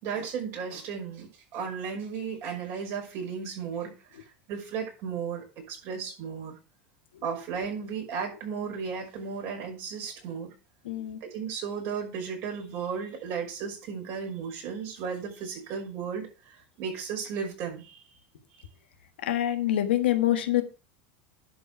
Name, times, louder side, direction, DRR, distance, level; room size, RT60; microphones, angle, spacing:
voice 1, 0.0-6.5 7.2-10.5 11.2-18.0, right 6 dB, 55° right, 2 dB, 5.6 m, -35 dB
voice 2, 10.8-11.2 19.2-20.6, left 13 dB, 90° left, 7 dB, 1.5 m, -25 dB
11.0 x 4.7 x 6.0 m, 0.32 s
supercardioid pair, 100°, 6 cm